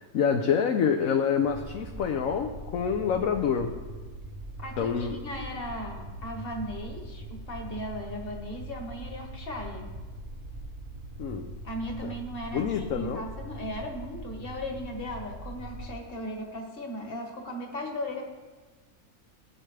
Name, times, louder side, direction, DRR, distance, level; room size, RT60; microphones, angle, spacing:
voice 1, 0.0-3.7 4.8-5.1 11.2-11.5 12.0-12.1 12.5-13.2, left 7 dB, 65° left, 4 dB, 1.0 m, -27 dB
sound 1, 1.4-15.9, right 1 dB, 80° right, 1.8 m, -41 dB
voice 2, 4.6-9.9 11.6-18.2, left 1 dB, 40° left, 2 dB, 1.7 m, -37 dB
17.0 x 8.9 x 3.3 m, 1.3 s
omnidirectional pair, 1.6 m